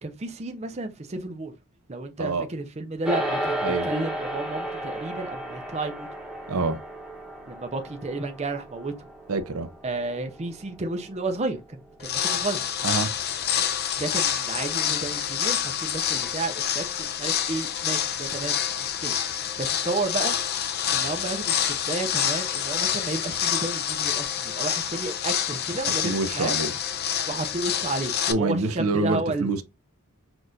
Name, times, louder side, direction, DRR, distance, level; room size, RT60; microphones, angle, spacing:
voice 1, 0.0-1.5 1.9-6.1 7.5-8.9 9.8-12.6 14.0-19.1 19.6-20.3 20.9-26.6 27.3-29.5, right 2 dB, 30° right, 0.5 m, -32 dB
sound 1, 3.0-12.6, right 1 dB, 5° right, 0.9 m, -34 dB
voice 2, 6.5-6.8 9.3-9.7 12.8-13.1 26.0-26.7 28.3-29.6, right 3 dB, 70° right, 0.6 m, -26 dB
sound 2, 12.0-28.3, left 9 dB, 45° left, 0.5 m, -27 dB
6.1 x 2.5 x 2.6 m
head